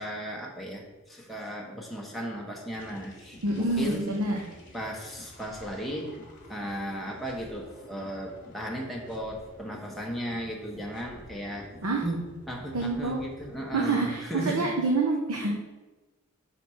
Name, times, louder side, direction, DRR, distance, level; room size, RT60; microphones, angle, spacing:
voice 1, 0.0-4.0 4.7-6.1 6.5-11.7 12.0-14.7, equal, ahead, -2 dB, 1.0 m, -35 dB
sound 1, 2.7-13.8, left 1 dB, 40° left, 1.5 m, -50 dB
voice 2, 3.4-4.4 11.8-12.0 12.7-13.2 13.7-15.5, right 3 dB, 85° right, 0 dB, 0.9 m, -27 dB
5.4 x 4.4 x 6.2 m, 1.1 s
head